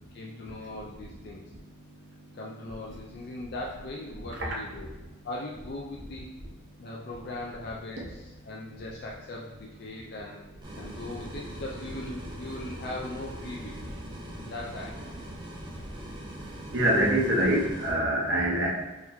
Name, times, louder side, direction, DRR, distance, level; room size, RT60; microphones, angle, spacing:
voice 1, 0.1-1.4 2.3-4.9 5.2-6.3 6.8-10.4 10.8-13.8 14.4-15.0, left 2 dB, 50° left, -3 dB, 0.4 m, -39 dB
sound 1, 10.6-17.9, right 1 dB, 20° right, 0.6 m, -41 dB
voice 2, 16.7-18.7, right 1 dB, 60° right, -2 dB, 0.8 m, -24 dB
3.8 x 3.0 x 2.7 m, 1.1 s
head